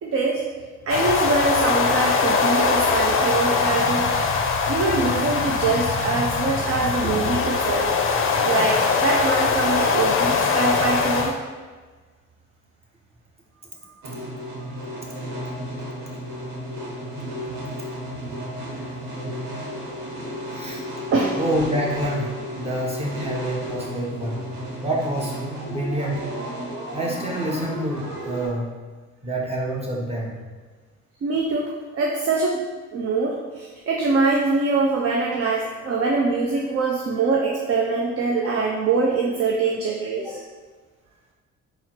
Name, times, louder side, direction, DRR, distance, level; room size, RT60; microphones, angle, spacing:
voice 1, 0.0-0.4 0.9-4.1 4.7-11.3 21.1-21.4 31.2-32.6 32.9-40.4, right 3 dB, 50° right, -2 dB, 0.6 m, -23 dB
sound 1, 0.9-11.3, left 4 dB, 45° left, 0.5 m, -22 dB
voice 2, 7.0-7.3 20.5-20.8 21.4-24.4 24.8-25.4 25.7-26.2 26.9-28.7 29.2-30.4 40.2-40.3, right 1 dB, 20° right, -3 dB, 0.9 m, -27 dB
sound 2, 14.0-28.5, equal, 65° right, 1.1 m, -33 dB
4.0 x 2.0 x 4.3 m, 1.4 s
cardioid pair, 90°, 30 cm